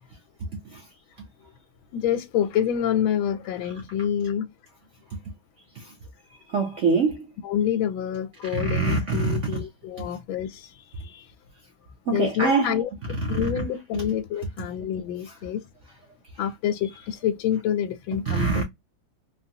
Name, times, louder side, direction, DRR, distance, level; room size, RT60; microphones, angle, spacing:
voice 1, 0.4-0.8 1.2-1.3 5.1-5.2 5.8-5.9 6.5-7.2 8.5-9.6 10.0-10.1 12.1-12.8 13.2-13.7 13.9-14.1 18.1-18.6, right 4 dB, 65° right, 0.7 m, -25 dB
voice 2, 1.9-4.5 7.4-10.7 11.0-11.3 12.1-15.6 16.4-18.6, left 9 dB, 90° left, 1.4 m, -27 dB
3.8 x 2.1 x 2.7 m
omnidirectional pair, 2.1 m